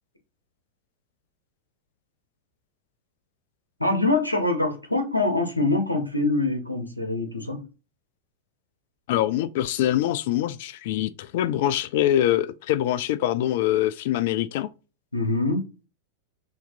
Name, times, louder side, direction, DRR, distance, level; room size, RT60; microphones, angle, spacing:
voice 1, 3.8-7.7 15.1-15.6, left 2 dB, 85° left, 1.0 m, -24 dB
voice 2, 9.1-14.7, left 12 dB, 50° left, 0.4 m, -24 dB
5.7 x 2.9 x 2.6 m
figure-of-eight pair, 90°, 0 cm